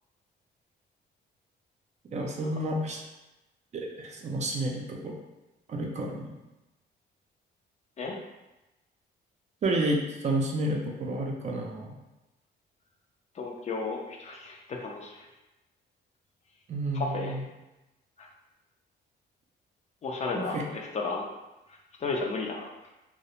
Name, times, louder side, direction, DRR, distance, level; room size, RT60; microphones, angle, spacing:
voice 1, 2.1-3.0 3.7-5.2 5.7-6.3 9.6-12.0 16.7-17.4 20.3-20.6, right 1 dB, 40° right, 0 dB, 0.4 m, -30 dB
voice 2, 13.3-15.3 16.9-17.4 18.2-18.3 20.0-21.3 21.7-22.9, left 3 dB, 40° left, 0 dB, 0.4 m, -34 dB
2.3 x 2.1 x 2.8 m, 1.0 s
cardioid pair, 110°, 18 cm